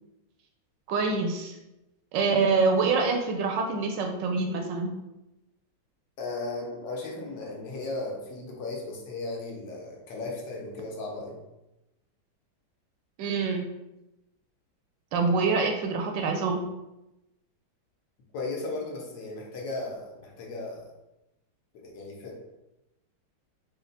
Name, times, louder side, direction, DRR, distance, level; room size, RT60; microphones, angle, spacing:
voice 1, 0.9-1.6 2.1-4.9 13.2-13.7 15.1-16.6, right 4 dB, 75° right, 3 dB, 1.2 m, -25 dB
voice 2, 6.2-11.4 18.3-20.9 21.7-22.4, left 2 dB, 70° left, -1 dB, 1.5 m, -36 dB
4.1 x 2.2 x 3.9 m, 0.93 s
omnidirectional pair, 2.1 m